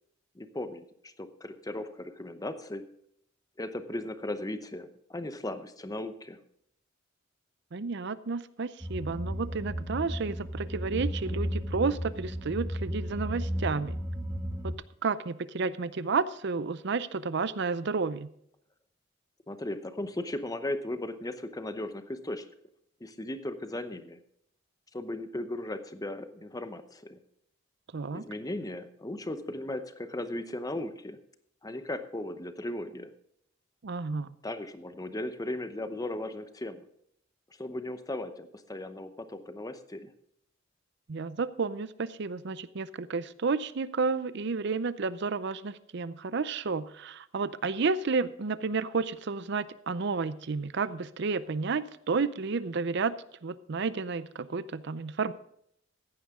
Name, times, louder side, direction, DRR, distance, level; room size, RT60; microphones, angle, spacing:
voice 1, 0.4-2.8 3.6-6.4 19.5-22.4 23.0-24.2 24.9-27.2 28.1-31.2 31.6-33.1 34.4-36.8 37.6-40.1, left 1 dB, 20° left, 10 dB, 0.8 m, -37 dB
voice 2, 7.7-14.0 14.6-14.8 15.0-18.3 27.9-28.2 33.8-34.3 41.1-53.2 53.4-55.3, right 4 dB, 60° right, 15 dB, 0.6 m, -31 dB
sound 1, 8.8-14.7, equal, 15° right, 2.5 m, -34 dB
15.0 x 10.0 x 3.6 m, 0.71 s
head